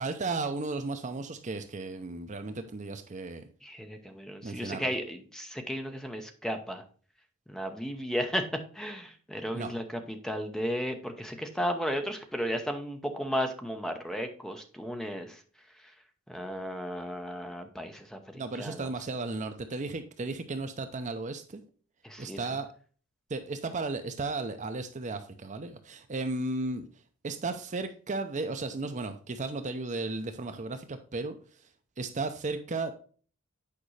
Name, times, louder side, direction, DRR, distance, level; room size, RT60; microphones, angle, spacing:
voice 1, 0.0-3.5 4.4-4.9 9.5-9.7 18.3-21.6 22.2-22.7 23.3-26.9 27.2-31.6 32.0-32.9, right 3 dB, 35° right, 8 dB, 0.6 m, -34 dB
voice 2, 3.6-6.8 7.5-8.5 8.7-15.4 16.3-18.9 22.0-22.4, equal, 5° left, 5 dB, 0.8 m, -34 dB
8.7 x 5.2 x 3.2 m, 0.41 s
head